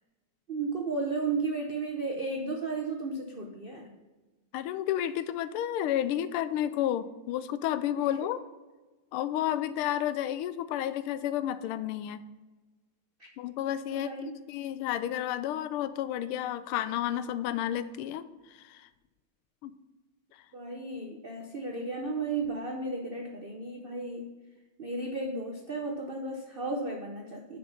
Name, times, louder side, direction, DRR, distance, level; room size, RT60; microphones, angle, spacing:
voice 1, 0.5-3.9 13.9-14.4 20.5-24.3 24.8-27.6, right 3 dB, 75° right, 1 dB, 0.5 m, -34 dB
voice 2, 4.5-8.4 9.1-12.2 13.4-14.1 14.5-18.9 19.6-19.7, left 11 dB, 90° left, 14 dB, 1.5 m, -31 dB
6.7 x 5.5 x 5.7 m, 1.2 s
omnidirectional pair, 2.3 m